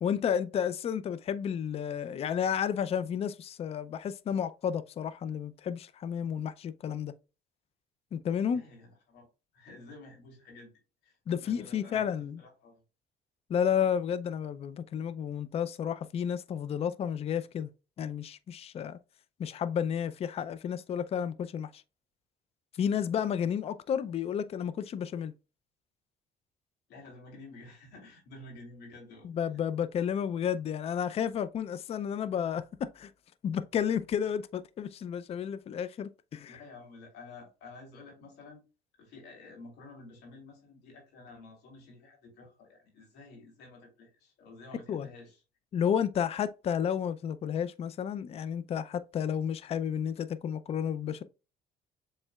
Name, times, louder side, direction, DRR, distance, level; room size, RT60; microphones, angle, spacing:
voice 1, 0.0-7.1 8.1-8.6 11.3-12.4 13.5-17.7 18.0-19.0 19.4-21.8 22.7-25.3 29.2-33.1 33.4-36.6 44.9-45.1 45.7-51.2, left 8 dB, 35° left, 0.4 m, -31 dB
voice 2, 8.4-9.3 9.5-12.8 26.9-29.6 36.5-38.6 39.0-45.4, left 3 dB, 80° left, 2.8 m, -51 dB
7.2 x 3.2 x 2.3 m
cardioid pair, 110°, 17 cm